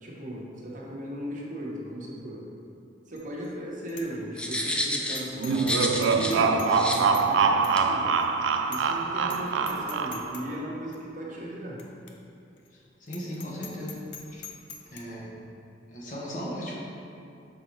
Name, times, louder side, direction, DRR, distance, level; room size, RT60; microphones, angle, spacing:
voice 1, 0.0-2.5 3.1-8.1 8.7-11.8, right 1 dB, 45° right, -4 dB, 1.0 m, -36 dB
Bicycle bell, 3.2-3.5 3.9-4.1 4.4-4.5 5.1-5.8 6.0-7.3 7.6-7.8 8.2-8.3 8.7-9.0 9.2-9.4 9.7-10.4 10.9-11.0 11.8-11.9 12.1-12.2 12.6-12.7 13.1-15.0, left 6 dB, 65° left, 0.6 m, -43 dB
sound 1, 4.4-6.4 6.7-7.0 7.8-7.9, left 1 dB, 5° left, 0.4 m, -30 dB
sound 2, 5.4-10.5, right 5 dB, 80° right, 0.3 m, -24 dB
voice 2, 12.7-14.0 14.3-14.5 14.9-15.4 15.9-16.8, equal, 45° left, -5 dB, 1.1 m, -37 dB
6.5 x 3.9 x 4.4 m, 2.6 s
head